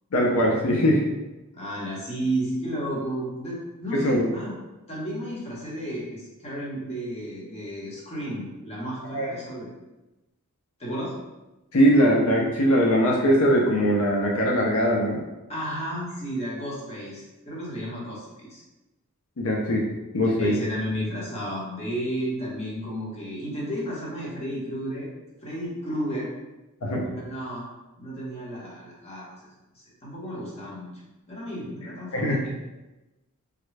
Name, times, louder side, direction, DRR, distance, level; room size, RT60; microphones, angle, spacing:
voice 1, 0.1-1.0 3.9-4.3 9.1-9.3 11.7-15.2 19.4-19.9 20.1-20.6 26.8-27.0 32.1-32.4, equal, 75° left, -2 dB, 0.5 m, -21 dB
voice 2, 1.5-4.5 4.9-9.7 10.8-11.1 15.5-18.6 20.2-25.1 25.4-26.3 27.1-27.7 28.0-29.3 29.7-30.9 31.3-32.4, right 1 dB, 30° left, -5 dB, 0.9 m, -32 dB
3.6 x 2.2 x 3.2 m, 1.0 s
head